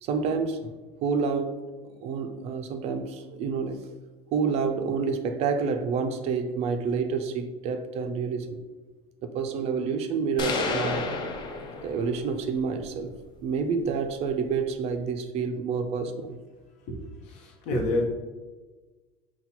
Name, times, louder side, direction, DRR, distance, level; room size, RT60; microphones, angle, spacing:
voice 1, 0.0-3.8 4.3-8.6 9.2-11.1 11.8-13.1 13.4-16.4, right 5 dB, 45° right, 6 dB, 0.4 m, -28 dB
sound 1, 10.4-12.3, left 3 dB, 30° left, 0.5 m, -30 dB
voice 2, 16.9-18.1, left 1 dB, 60° left, 2 dB, 0.9 m, -29 dB
4.1 x 2.2 x 4.1 m, 1.3 s
supercardioid pair, 130°, 14 cm